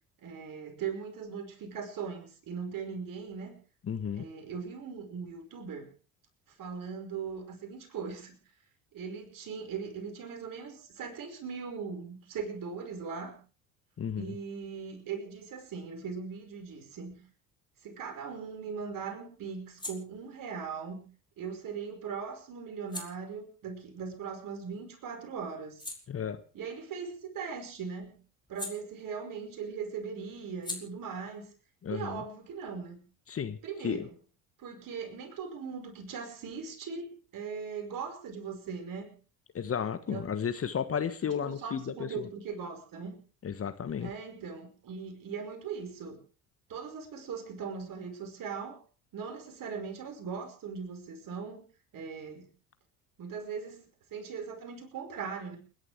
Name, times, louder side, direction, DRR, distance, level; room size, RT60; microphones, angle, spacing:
voice 1, 0.2-3.6 4.2-5.9 6.6-8.4 8.9-13.4 14.2-17.2 17.8-21.1 21.4-25.9 26.5-28.2 28.5-31.5 31.9-33.0 33.6-34.1 34.6-37.1 37.3-39.1 40.1-40.3 41.4-43.2 44.0-46.2 46.7-48.8 49.1-51.6 51.9-52.5 53.2-55.6, right 6 dB, 50° right, 6 dB, 5.3 m, -39 dB
voice 2, 3.9-4.2 14.0-14.4 26.1-26.4 31.8-32.2 33.3-33.6 33.8-34.1 39.5-42.3 43.4-44.1, left 7 dB, 35° left, 11 dB, 1.4 m, -33 dB
sound 1, 18.0-24.9 25.3-29.5 29.8-33.2, left 2 dB, 10° left, 4.3 m, -48 dB
29.5 x 11.0 x 3.4 m, 0.37 s
figure-of-eight pair, 55°, 41 cm